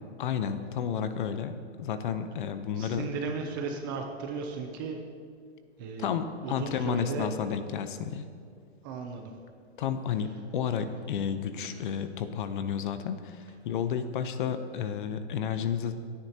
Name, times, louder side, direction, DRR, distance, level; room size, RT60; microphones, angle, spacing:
voice 1, 0.2-3.1 6.0-8.3 9.8-15.9, left 7 dB, 45° left, 10 dB, 0.8 m, -31 dB
voice 2, 2.7-5.0 5.8-7.3 8.8-9.3 11.6-11.8, right 5 dB, 20° right, 3 dB, 0.5 m, -36 dB
27.0 x 9.8 x 2.9 m, 2.2 s
hypercardioid pair, 165°, 35 cm